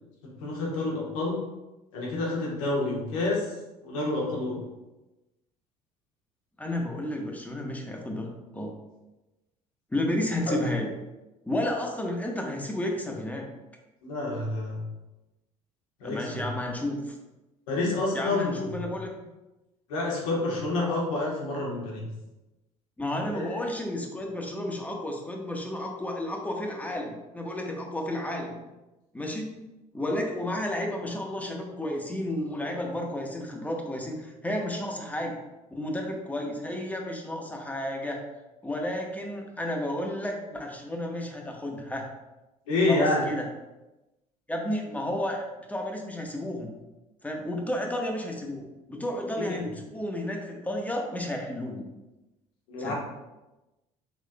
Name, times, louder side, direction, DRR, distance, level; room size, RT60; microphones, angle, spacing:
voice 1, 0.2-1.5 1.9-3.5 3.8-4.6 10.5-10.6 14.0-14.8 16.0-16.4 17.7-18.5 19.9-22.1 23.3-23.4 42.7-43.2 49.4-49.6 52.7-52.9, left 2 dB, 80° left, -3 dB, 1.3 m, -28 dB
voice 2, 6.6-8.7 9.9-10.9 11.5-13.5 16.0-17.2 18.1-19.1 23.0-28.6 29.1-29.7 29.9-35.4 35.7-38.2 38.6-42.0 42.9-43.5 44.5-46.7 47.2-51.9 52.8-52.9, left 1 dB, 10° left, 1 dB, 0.9 m, -32 dB
5.2 x 3.6 x 2.2 m, 1.0 s
hypercardioid pair, 65°, 17 cm